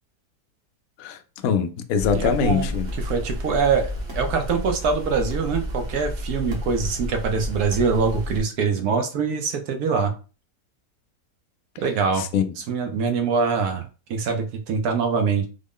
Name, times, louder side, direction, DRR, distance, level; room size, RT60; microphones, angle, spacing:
voice 1, 1.0-2.9 12.2-12.5, left 7 dB, 70° left, 0.8 m, -23 dB
sound 1, 2.0-8.4, equal, 45° right, 1.0 m, -30 dB
voice 2, 2.1-10.1 11.8-12.3 12.6-15.5, right 5 dB, 70° right, 1.1 m, -24 dB
3.8 x 2.1 x 3.5 m
omnidirectional pair, 1.8 m